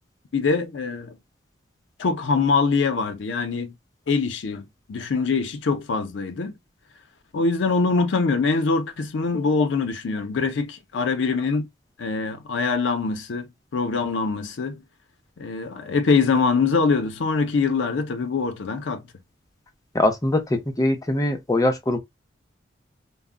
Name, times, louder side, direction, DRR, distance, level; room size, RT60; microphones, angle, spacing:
voice 1, 0.3-1.1 2.0-3.7 4.1-6.5 7.3-11.7 12.0-14.8 15.4-19.0, left 4 dB, 70° left, 0.5 m, -23 dB
voice 2, 19.9-22.0, left 1 dB, 20° left, 0.6 m, -22 dB
2.1 x 2.0 x 3.6 m
head